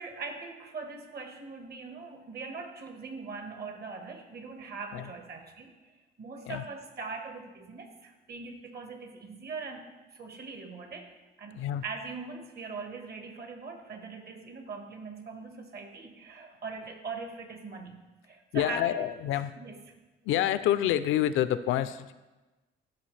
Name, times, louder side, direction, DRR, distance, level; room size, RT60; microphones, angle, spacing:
voice 1, 0.0-9.8 10.1-11.1 11.4-18.0 18.2-18.8 19.6-19.7, right 4 dB, 55° right, 4 dB, 1.5 m, -41 dB
voice 2, 18.5-19.8 20.2-22.1, left 12 dB, 85° left, 13 dB, 0.5 m, -28 dB
14.0 x 5.5 x 3.3 m, 1.1 s
cardioid pair, 90°, 20 cm